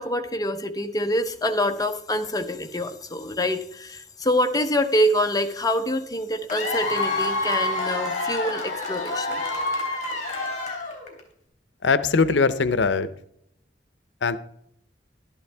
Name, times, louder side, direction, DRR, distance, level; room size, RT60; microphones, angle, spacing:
voice 1, 0.0-9.4, equal, 20° left, 6 dB, 0.8 m, -25 dB
Cheering / Applause / Crowd, 6.5-11.2, left 2 dB, 45° left, 3.2 m, -27 dB
voice 2, 11.8-13.1 14.2-14.4, left 4 dB, 75° left, 14 dB, 0.7 m, -21 dB
12.0 x 11.0 x 3.4 m, 0.70 s
head